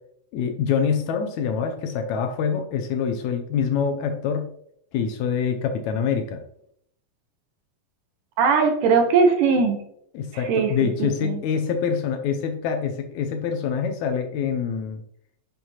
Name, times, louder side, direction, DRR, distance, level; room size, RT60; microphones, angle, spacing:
voice 1, 0.3-4.5 4.9-6.4 10.1-15.0, left 6 dB, 75° left, 6 dB, 1.8 m, -25 dB
voice 2, 8.4-9.8 10.5-11.4, right 5 dB, 90° right, 5 dB, 2.6 m, -20 dB
8.4 x 5.5 x 2.9 m, 0.70 s
omnidirectional pair, 3.7 m